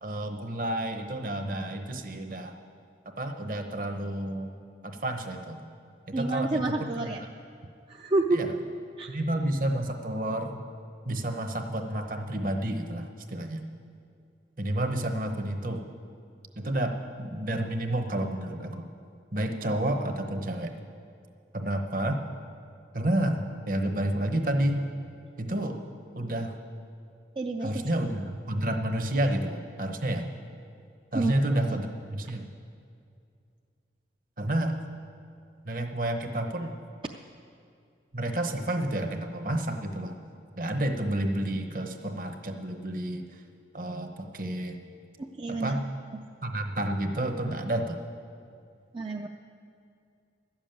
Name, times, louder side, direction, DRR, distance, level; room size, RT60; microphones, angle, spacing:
voice 1, 0.0-2.5 3.2-4.5 4.8-5.6 6.1-7.1 8.3-8.5 9.1-10.6 11.0-13.6 14.6-15.8 16.6-18.9 19.3-20.7 21.5-22.2 22.9-24.9 25.4-25.8 26.1-26.6 27.6-30.3 31.1-31.9 32.1-32.5 34.4-34.8 35.6-36.7 38.1-40.1 40.6-43.2 43.7-44.8 45.5-45.8 46.4-48.0, right 1 dB, 50° right, 5 dB, 0.9 m, -30 dB
voice 2, 6.1-7.2 7.9-8.4 9.0-9.1 27.4-27.8 31.1-31.6 45.2-45.8 48.9-49.3, right 2 dB, 30° right, 2 dB, 0.4 m, -29 dB
12.5 x 7.2 x 9.0 m, 2.4 s
head